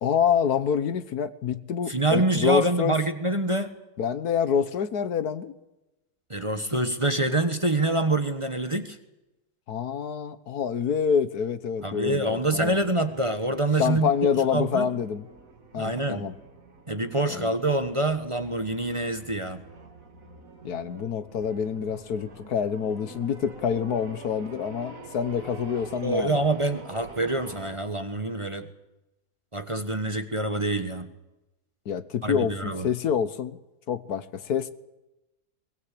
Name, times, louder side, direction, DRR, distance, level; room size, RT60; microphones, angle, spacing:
voice 1, 0.0-3.0 4.0-5.5 9.7-12.8 13.8-15.3 15.7-16.4 17.3-17.5 20.6-26.4 31.9-33.6 33.9-34.7, left 7 dB, 75° left, 14 dB, 1.6 m, -27 dB
voice 2, 1.9-3.7 6.3-9.0 11.8-14.1 14.5-14.9 15.8-16.2 16.9-19.6 26.0-28.7 29.5-31.1 32.2-32.9, right 2 dB, 20° right, 8 dB, 1.2 m, -26 dB
sound 1, 11.8-27.7, right 3 dB, 55° right, 3.0 m, -47 dB
22.0 x 20.0 x 8.4 m, 0.98 s
omnidirectional pair, 1.7 m